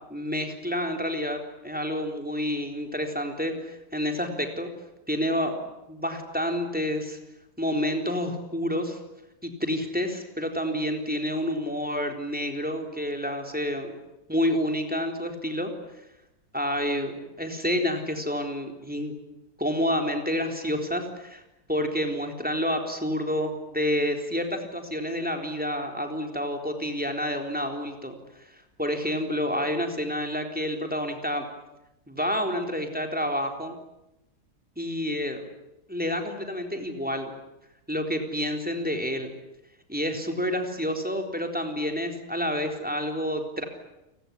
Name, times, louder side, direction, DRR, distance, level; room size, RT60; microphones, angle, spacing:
voice 1, 0.1-4.7 5.1-5.6 5.9-7.2 7.6-9.0 9.4-13.9 14.3-15.7 16.5-19.1 19.6-21.4 21.7-28.5 28.8-31.5 32.1-33.8 34.8-35.4 35.9-37.3 37.9-39.3 39.9-43.6, equal, 5° right, 4 dB, 3.9 m, -29 dB
30.0 x 19.5 x 9.9 m, 0.92 s
omnidirectional pair, 1.7 m